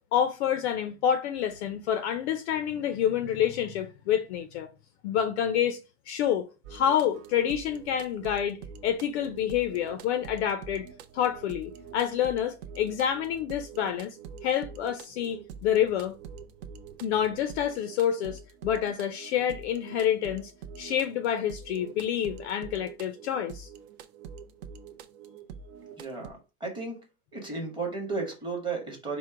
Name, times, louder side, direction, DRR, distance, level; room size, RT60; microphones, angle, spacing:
voice 1, 0.1-4.7 5.0-5.8 6.1-10.9 11.1-14.2 14.4-16.2 17.0-20.5 20.8-23.7, left 9 dB, 50° left, 0.5 m, -28 dB
sound 1, 6.6-26.3, right 6 dB, 45° right, 0.5 m, -46 dB
voice 2, 26.0-27.0 27.3-29.2, right 4 dB, 10° right, 1.0 m, -34 dB
4.5 x 2.1 x 4.6 m
supercardioid pair, 145°, 45 cm